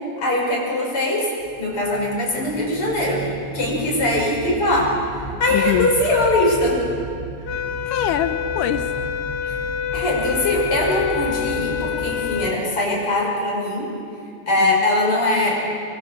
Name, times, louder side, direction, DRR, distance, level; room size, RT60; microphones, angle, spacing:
voice 1, 0.2-1.3 1.6-4.9 5.4-6.8 9.4-9.6 9.9-13.9 14.5-15.5, left 1 dB, 45° left, -2 dB, 6.4 m, -21 dB
sound 1, 1.4-12.5, right 3 dB, 40° right, 0.4 m, -35 dB
voice 2, 5.5-5.9 7.5-9.1 14.6-14.8, left 11 dB, 85° left, 10 dB, 2.4 m, -25 dB
sound 2, 7.5-12.6, left 9 dB, 60° left, 1.7 m, -27 dB
26.0 x 23.0 x 7.2 m, 2.3 s
omnidirectional pair, 3.6 m